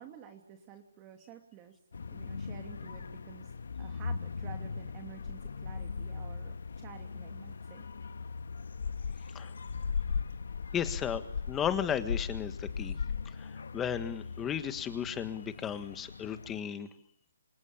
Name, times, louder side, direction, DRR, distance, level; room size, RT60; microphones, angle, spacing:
voice 1, 0.0-1.7 2.1-3.5 3.8-7.9, right 9 dB, 20° right, 4 dB, 2.8 m, -51 dB
sound 1, 1.9-16.6, left 5 dB, 70° left, 1.4 m, -38 dB
voice 2, 10.7-11.2 11.5-12.9 13.4-13.5 13.7-16.9, left 8 dB, 10° left, 11 dB, 1.6 m, -34 dB
28.0 x 27.5 x 7.3 m, 0.66 s
hypercardioid pair, 170°, 0 cm